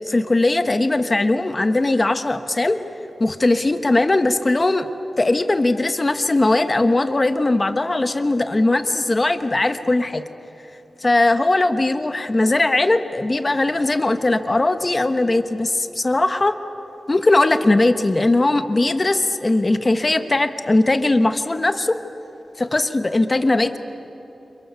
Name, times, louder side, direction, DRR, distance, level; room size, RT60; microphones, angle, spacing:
voice 1, 0.0-2.8 3.2-4.9 5.2-10.2 11.0-16.6 17.1-22.0 22.6-23.8, left 2 dB, 25° left, 9 dB, 1.2 m, -19 dB
30.0 x 27.5 x 7.0 m, 3.0 s
wide cardioid pair, 155°, 0 cm